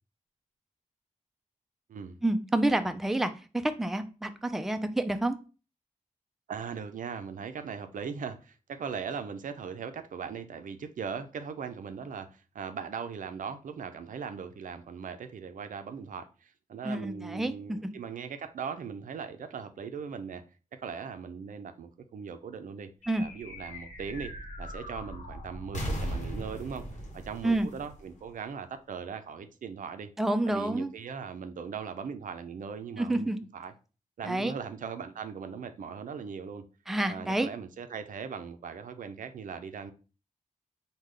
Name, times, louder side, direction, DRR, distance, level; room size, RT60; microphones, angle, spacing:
voice 1, 2.2-5.4 16.8-17.8 23.1-23.2 27.4-27.7 30.2-30.9 33.0-33.4 34.2-34.5 36.9-37.5, right 1 dB, ahead, 0.3 m, -28 dB
voice 2, 6.5-20.4 20.7-22.9 23.2-24.3 24.6-26.9 27.1-30.1 30.5-33.3 33.5-33.7 34.2-36.6 37.1-39.9, right 6 dB, 75° right, 0.4 m, -39 dB
sound 1, 23.0-28.7, equal, 60° left, 1.0 m, -39 dB
3.6 x 2.2 x 3.2 m
wide cardioid pair, 80°, 14 cm